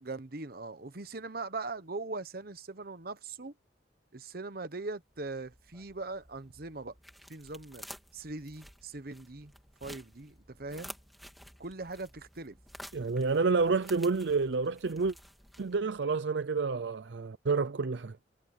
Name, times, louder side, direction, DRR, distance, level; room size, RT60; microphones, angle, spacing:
voice 1, 0.0-3.5 4.1-6.9 7.3-7.8 8.1-9.5 9.8-10.9 11.6-12.6, right 3 dB, 55° right, 1.1 m, -40 dB
sound 1, 5.0-16.1, equal, ahead, 2.8 m, -52 dB
voice 2, 12.9-15.1 15.6-18.2, right 4 dB, 70° right, 0.6 m, -29 dB
head